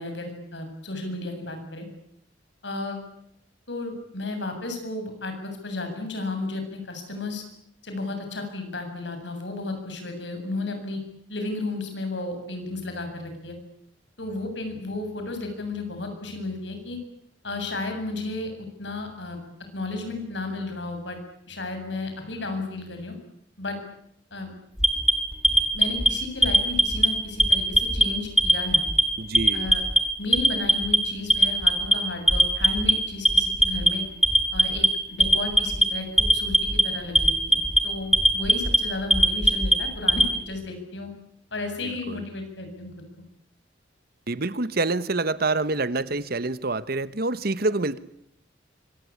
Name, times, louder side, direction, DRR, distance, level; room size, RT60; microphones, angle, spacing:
voice 1, 0.0-1.9 2.6-3.0 3.7-7.4 7.8-11.0 11.3-13.6 14.2-17.0 17.4-18.5 18.8-19.4 19.7-21.2 21.5-23.2 23.6-23.8 24.3-24.5 25.7-28.8 29.5-29.8 30.2-34.0 34.5-41.1 41.5-42.9, left 2 dB, 70° left, 6 dB, 7.8 m, -33 dB
Alarm, 24.8-26.1 26.4-27.1 27.4-28.0 28.4-29.0 29.3-30.0 30.3-31.0 31.3-31.9 32.3-32.9 33.3-33.9 34.2-34.9 35.2-35.8 36.2-36.8 37.2-37.8 38.1-38.8 39.1-40.3, equal, ahead, 3.7 m, -18 dB
voice 2, 29.2-29.7 41.8-42.2 44.3-48.0, right 3 dB, 55° right, 15 dB, 1.3 m, -27 dB
26.0 x 25.5 x 8.7 m, 0.74 s
head